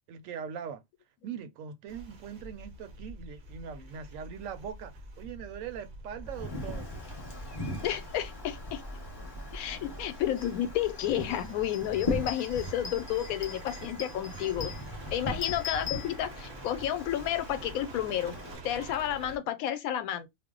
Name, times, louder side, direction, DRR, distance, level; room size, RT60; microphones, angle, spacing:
voice 1, 0.1-0.8 1.2-6.9 9.2-9.4 15.4-15.5, right 7 dB, 75° right, 0.9 m, -41 dB
sound 1, 1.9-19.4, right 2 dB, 50° right, 0.6 m, -47 dB
Wind, 6.2-18.6, left 1 dB, 20° left, 0.9 m, -40 dB
voice 2, 7.8-8.8 9.5-14.7 15.1-18.3 18.6-20.3, left 11 dB, 90° left, 1.0 m, -31 dB
sound 2, 10.4-10.5 10.8-16.7, left 8 dB, 50° left, 0.7 m, -42 dB
2.5 x 2.1 x 3.6 m
omnidirectional pair, 1.4 m